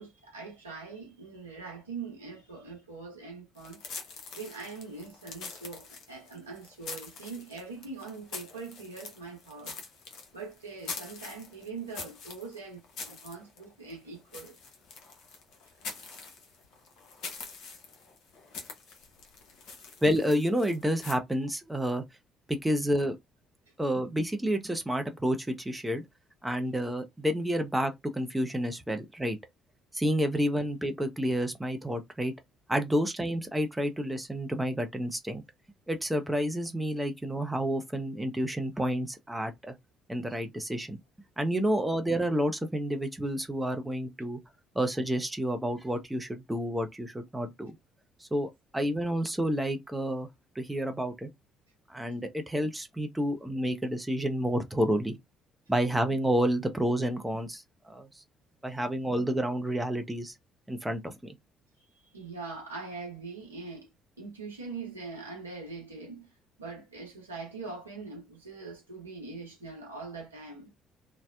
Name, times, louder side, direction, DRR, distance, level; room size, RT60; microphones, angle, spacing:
voice 1, 0.0-3.8 4.3-9.8 10.3-14.5 62.1-63.9 64.2-66.3 66.6-70.7, right 4 dB, 85° right, 0.7 m, -42 dB
sound 1, 3.6-21.2, left 4 dB, 60° left, 0.7 m, -45 dB
voice 2, 20.0-22.0 22.5-23.2 23.8-26.0 26.4-29.4 29.9-32.3 32.7-35.4 35.9-39.8 40.1-41.0 41.4-44.4 44.8-47.7 48.3-50.3 50.6-51.3 51.9-55.2 55.7-58.1 58.6-60.3 60.7-61.4, equal, 10° right, 0.5 m, -29 dB
2.7 x 2.0 x 2.2 m
figure-of-eight pair, 45°, 0 cm